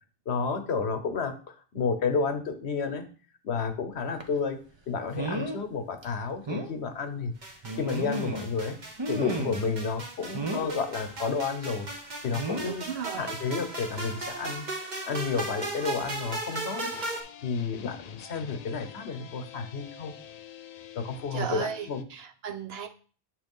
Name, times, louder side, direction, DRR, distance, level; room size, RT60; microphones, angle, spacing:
voice 1, 0.3-3.1 3.4-4.6 4.9-7.3 7.8-8.8 9.1-11.9 12.2-12.9 13.2-14.6 15.1-16.9 17.4-20.1 20.9-22.0, left 5 dB, 80° left, 8 dB, 1.1 m, -31 dB
sound 1, 4.2-4.4 5.1-5.6 6.0-6.1 6.5-6.7 7.6-8.5 9.0-9.7 10.3-10.8 12.3-12.8 13.9-14.1 14.5-14.6, right 2 dB, 30° right, 0.6 m, -33 dB
sound 2, 7.4-17.2, right 2 dB, 45° right, 1.2 m, -37 dB
voice 2, 12.6-13.3 21.3-22.9, right 8 dB, 70° right, 7 dB, 1.0 m, -35 dB
sound 3, 16.9-22.0, left 9 dB, 55° left, 0.4 m, -47 dB
7.1 x 3.2 x 5.3 m, 0.41 s
omnidirectional pair, 1.1 m